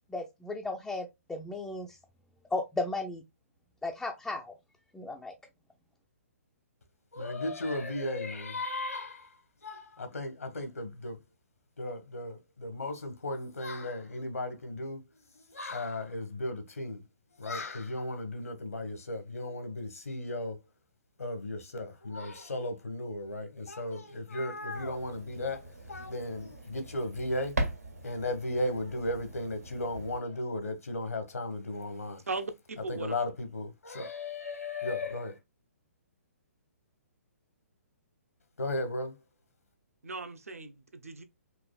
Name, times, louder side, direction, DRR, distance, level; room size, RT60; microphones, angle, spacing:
voice 1, 0.1-2.0 2.5-3.2 3.8-4.6 4.9-5.3, left 2 dB, 5° left, 0.4 m, -35 dB
voice 2, 7.1-11.2 11.8-15.0 15.3-17.0 17.4-20.6 21.2-27.6 28.0-32.2 32.9-35.4 38.6-39.1, left 1 dB, 70° left, 1.1 m, -35 dB
sound 1, 24.7-30.2, right 1 dB, 85° right, 1.7 m, -40 dB
voice 3, 32.3-33.2 40.0-41.2, right 3 dB, 70° right, 0.8 m, -38 dB
4.7 x 3.0 x 2.2 m
figure-of-eight pair, 125°, 8 cm